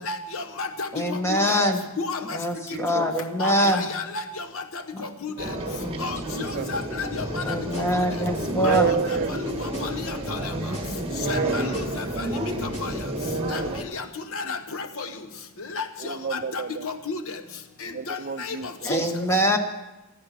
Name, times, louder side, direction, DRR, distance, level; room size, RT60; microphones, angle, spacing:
voice 1, 0.1-0.9 2.0-2.4 3.4-4.0 5.2-5.3 6.0-6.2 6.7-7.4 8.6-8.7 9.8-9.9 10.3-10.4 11.3-11.6 12.8-12.9 13.5-13.6 13.9-14.0 14.3-14.6 15.0-15.1 15.7-15.8 16.5-17.2 18.1-18.6 18.9-19.0, left 4 dB, 65° left, 7 dB, 1.0 m, -31 dB
voice 2, 0.9-1.9 2.3-3.8 4.9-5.0 5.4-6.7 7.4-8.9 18.8-19.6, equal, 10° left, 4 dB, 1.5 m, -24 dB
voice 3, 2.7-3.1 6.3-6.7 8.5-9.4 11.0-11.7 13.0-13.8 14.4-14.5 16.0-16.9 17.9-18.7, right 5 dB, 45° right, 11 dB, 0.5 m, -30 dB
sound 1, 5.4-13.8, equal, 25° right, 1.8 m, -31 dB
sound 2, 7.3-13.4, equal, 30° left, 2.8 m, -38 dB
15.0 x 14.5 x 5.9 m, 1.0 s
head